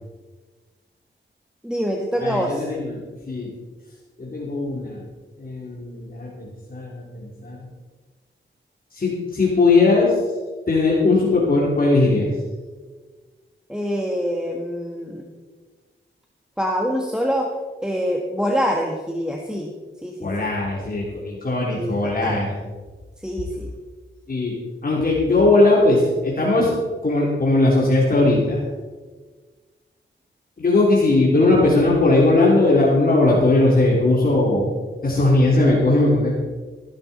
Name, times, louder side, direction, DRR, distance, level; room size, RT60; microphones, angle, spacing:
voice 1, 1.6-2.7 13.7-15.3 16.6-17.5 17.8-19.7 20.0-20.5 21.7-22.5 23.2-23.7, equal, 5° right, 1 dB, 1.4 m, -25 dB
voice 2, 2.2-3.5 4.2-5.0 5.4-7.6 8.9-10.2 10.7-12.3 20.2-22.6 24.3-24.6 24.8-26.8 27.0-28.6 30.6-34.7 35.0-36.4, left 2 dB, 45° left, -4 dB, 3.1 m, -19 dB
15.0 x 11.5 x 4.2 m, 1.4 s
wide cardioid pair, 100°, 20 cm